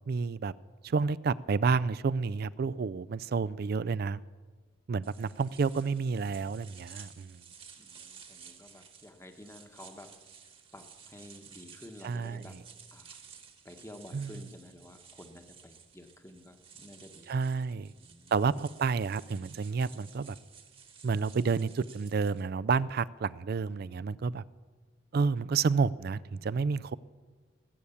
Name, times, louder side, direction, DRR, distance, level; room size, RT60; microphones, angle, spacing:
voice 1, 0.1-0.5 0.8-4.2 4.9-7.4 12.0-12.4 14.1-14.3 17.3-17.9 18.3-20.4 21.0-24.4 25.1-26.9, right 5 dB, 50° right, 0.4 m, -30 dB
sound 1, 5.0-22.5, right 7 dB, 30° right, 1.2 m, -54 dB
voice 2, 7.8-10.2 10.7-12.6 12.9-13.1 13.6-17.4 17.9-18.3, left 1 dB, 15° left, 1.1 m, -51 dB
20.0 x 8.6 x 7.1 m
head